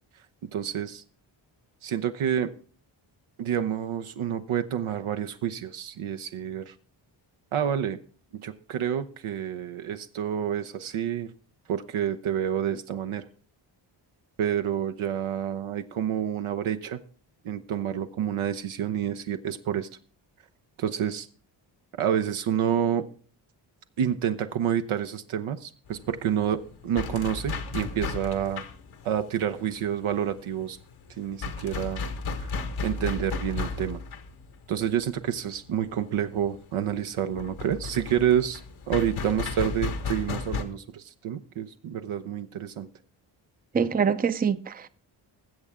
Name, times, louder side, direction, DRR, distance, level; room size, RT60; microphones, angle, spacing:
voice 1, 0.5-1.0 1.8-2.5 3.4-6.7 7.5-8.0 8.3-11.3 11.7-13.3 14.4-17.0 17.4-19.9 20.8-21.3 22.0-23.1 24.0-28.6 29.0-30.8 31.2-32.0 32.3-32.5 32.8-34.0 34.7-38.6 38.9-42.9, right 9 dB, 80° right, 0.8 m, -28 dB
sound 1, 25.9-40.6, left 4 dB, 80° left, 1.4 m, -35 dB
voice 2, 43.7-44.9, right 6 dB, 20° right, 0.5 m, -25 dB
20.0 x 7.4 x 3.6 m
cardioid pair, 70°, 49 cm